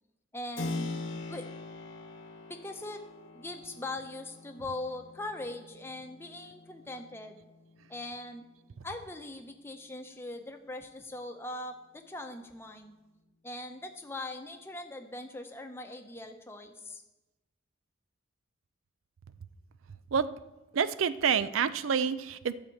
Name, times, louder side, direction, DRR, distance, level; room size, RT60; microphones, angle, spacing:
voice 1, 0.3-0.9 1.3-1.4 2.5-3.0 3.3-7.4 7.9-8.4 8.8-13.0 13.4-17.0, left 2 dB, 10° left, 5 dB, 0.8 m, -41 dB
Keyboard (musical), 0.6-9.1, left 2 dB, 75° left, 1.1 m, -43 dB
voice 2, 20.7-22.5, right 7 dB, 90° right, 15 dB, 0.5 m, -28 dB
12.0 x 5.0 x 7.7 m, 1.0 s
head